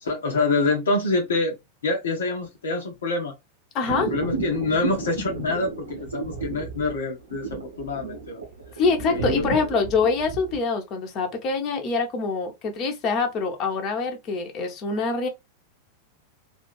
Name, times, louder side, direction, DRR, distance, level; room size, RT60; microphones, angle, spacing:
voice 1, 0.0-1.5 1.8-3.3 3.8-8.4 9.1-9.6, left 3 dB, 65° left, 0.9 m, -26 dB
voice 2, 3.7-4.1 8.8-15.3, left 4 dB, 35° left, 1.0 m, -25 dB
sound 1, 3.9-10.6, right 4 dB, 80° right, 1.0 m, -33 dB
3.6 x 2.5 x 3.2 m
figure-of-eight pair, 90°, 0 cm